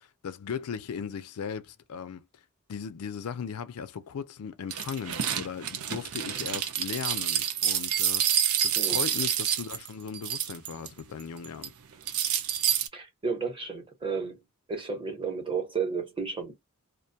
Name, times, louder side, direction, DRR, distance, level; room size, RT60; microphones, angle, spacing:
voice 1, 0.0-2.3 2.7-11.7, left 6 dB, 85° left, 0.4 m, -37 dB
sound 1, 4.7-10.9 11.2-11.7 12.1-12.9, right 9 dB, 75° right, 0.5 m, -28 dB
voice 2, 12.9-14.4 14.7-16.5, right 5 dB, 25° right, 0.8 m, -32 dB
2.5 x 2.2 x 2.7 m
head